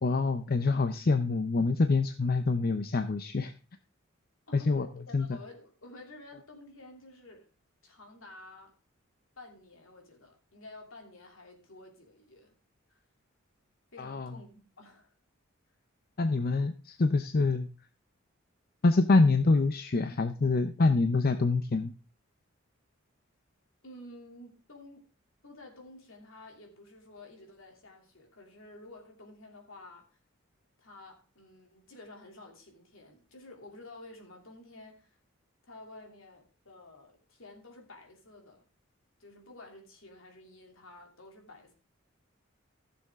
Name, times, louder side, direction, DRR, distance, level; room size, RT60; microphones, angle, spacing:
voice 1, 0.0-3.5 4.5-4.9 5.1-5.3 14.0-14.3 16.2-17.7 18.8-21.9, left 3 dB, 45° left, 8 dB, 0.6 m, -26 dB
voice 2, 4.5-7.5 7.8-8.8 9.4-12.5 12.9-13.0 13.9-15.1 23.8-25.0 25.4-30.1 30.8-35.2 35.7-38.7 39.2-41.7, left 2 dB, 70° left, 2 dB, 3.0 m, -51 dB
15.0 x 7.0 x 3.6 m, 0.35 s
head